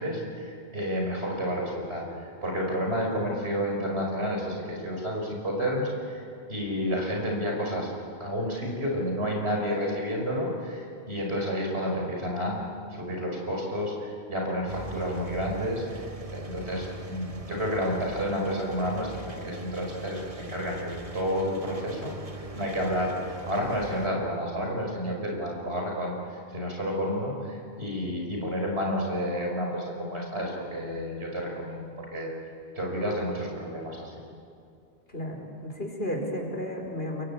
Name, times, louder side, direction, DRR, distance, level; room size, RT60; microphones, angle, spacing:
voice 1, 0.0-6.2 6.5-7.9 8.2-12.6 12.9-16.1 16.3-32.3 32.8-34.2, equal, 90° right, 0 dB, 5.6 m, -30 dB
Engine, 14.7-24.1, right 2 dB, 35° right, 1.3 m, -41 dB
voice 2, 35.1-37.2, equal, 70° left, 2 dB, 4.6 m, -33 dB
29.5 x 22.0 x 8.6 m, 2.5 s
omnidirectional pair, 1.1 m